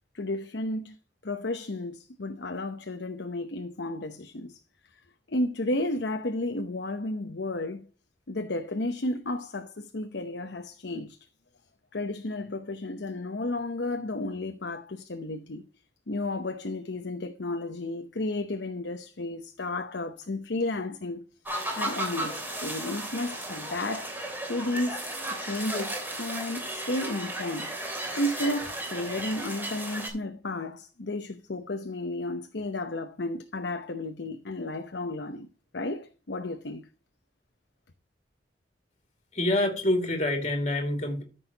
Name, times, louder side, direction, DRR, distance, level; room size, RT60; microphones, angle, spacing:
voice 1, 0.1-1.0 1.2-4.6 5.3-7.9 8.3-11.2 11.9-15.7 16.1-21.2 21.7-24.1 24.5-27.7 28.1-35.5 35.7-36.9, left 2 dB, 75° left, 0.9 m, -33 dB
sound 1, 21.5-30.1, right 1 dB, 10° right, 3.0 m, -34 dB
voice 2, 39.3-41.2, left 1 dB, 40° left, 2.3 m, -26 dB
13.5 x 6.4 x 2.9 m
head